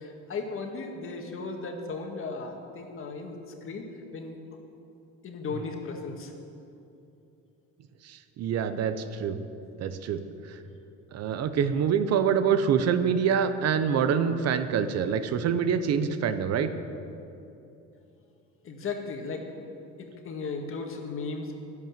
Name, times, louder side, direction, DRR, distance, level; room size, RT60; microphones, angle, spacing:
voice 1, 0.0-4.4 5.2-6.3 18.6-19.5 20.0-21.5, left 4 dB, 45° left, 3 dB, 1.9 m, -36 dB
voice 2, 8.0-9.4 9.8-10.2 10.5-10.6 11.1-16.7, right 7 dB, 60° right, 10 dB, 0.9 m, -26 dB
12.0 x 11.0 x 7.3 m, 2.8 s
cardioid pair, 120°, 30 cm